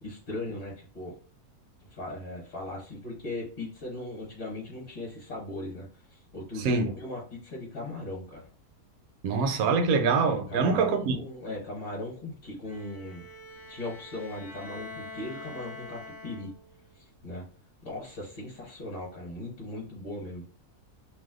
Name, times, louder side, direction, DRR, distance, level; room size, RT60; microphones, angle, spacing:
voice 1, 0.0-1.1 1.9-8.4 10.5-13.2 13.7-16.5 17.0-17.4 17.8-20.4, left 2 dB, 40° left, 1.1 m, -38 dB
voice 2, 9.2-11.2, right 4 dB, 75° right, 1.0 m, -24 dB
Bowed string instrument, 12.6-16.8, left 2 dB, 60° left, 0.5 m, -45 dB
2.7 x 2.2 x 3.5 m
omnidirectional pair, 1.6 m